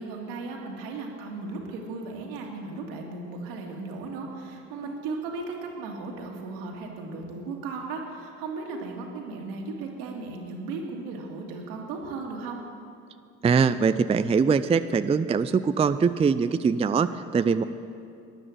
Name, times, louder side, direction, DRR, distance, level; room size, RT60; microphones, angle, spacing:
voice 1, 0.0-12.6, right 3 dB, 70° right, 1 dB, 2.2 m, -36 dB
voice 2, 13.4-17.6, right 5 dB, 15° right, 12 dB, 0.4 m, -22 dB
14.0 x 10.0 x 7.6 m, 2.4 s
hypercardioid pair, 55°, 37 cm